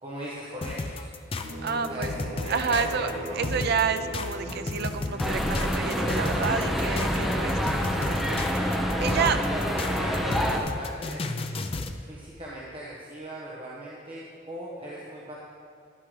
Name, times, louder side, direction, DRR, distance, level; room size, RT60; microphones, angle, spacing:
voice 1, 0.0-1.1 1.9-3.4 9.0-11.3 12.0-15.4, equal, 30° right, -6 dB, 1.3 m, -38 dB
sound 1, 0.6-12.0, left 3 dB, 30° left, 0.5 m, -33 dB
sound 2, 1.4-6.6, equal, 75° right, 2.9 m, -39 dB
voice 2, 1.6-2.1 2.5-9.4, right 6 dB, 55° right, 9 dB, 0.5 m, -30 dB
sound 3, 5.2-10.6, equal, ahead, 0.8 m, -27 dB
11.5 x 11.0 x 3.3 m, 2.3 s
head